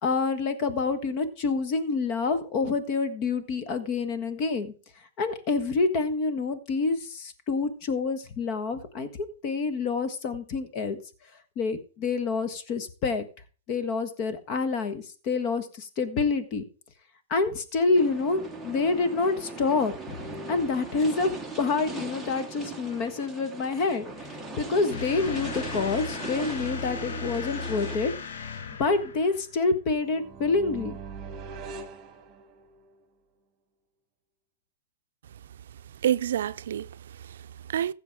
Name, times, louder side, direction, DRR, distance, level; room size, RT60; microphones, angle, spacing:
voice 1, 0.0-4.7 5.2-11.0 11.6-13.3 13.7-16.6 17.3-21.3 21.6-28.1 28.8-30.9, left 4 dB, 35° left, 1.4 m, -27 dB
sound 1, 17.9-28.0, right 3 dB, ahead, 1.1 m, -39 dB
sound 2, 24.9-29.6, left 5 dB, 75° left, 1.2 m, -37 dB
sound 3, 29.9-32.9, right 5 dB, 20° right, 2.6 m, -42 dB
voice 2, 36.0-37.9, right 10 dB, 70° right, 0.5 m, -29 dB
15.0 x 7.1 x 3.6 m
hypercardioid pair, 155°, 0 cm